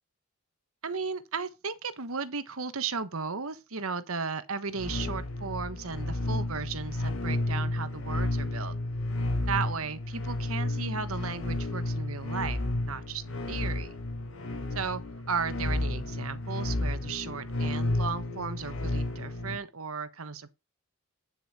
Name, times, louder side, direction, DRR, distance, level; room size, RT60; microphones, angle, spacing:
voice 1, 0.8-8.7 9.5-14.0 14.7-15.0 15.3-20.5, right 5 dB, 75° right, 1.2 m, -35 dB
sound 1, 4.7-19.6, left 1 dB, 75° left, 4.1 m, -32 dB
9.3 x 7.1 x 4.2 m
head